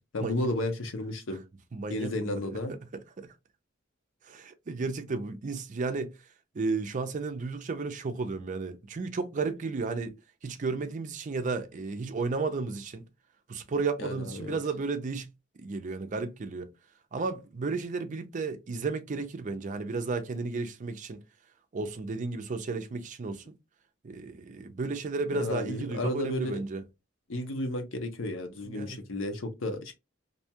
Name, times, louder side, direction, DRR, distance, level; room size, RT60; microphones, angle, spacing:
voice 1, 0.1-1.4 1.9-2.7 14.0-14.6 25.3-26.6 27.3-29.9, left 1 dB, 80° left, 0.7 m, -33 dB
voice 2, 1.7-3.3 4.3-6.1 6.5-10.1 10.4-13.0 13.5-15.3 15.6-16.7 17.1-21.2 21.7-23.4 24.0-26.8 28.7-29.0, right 4 dB, 40° right, 0.4 m, -33 dB
2.6 x 2.2 x 2.8 m
head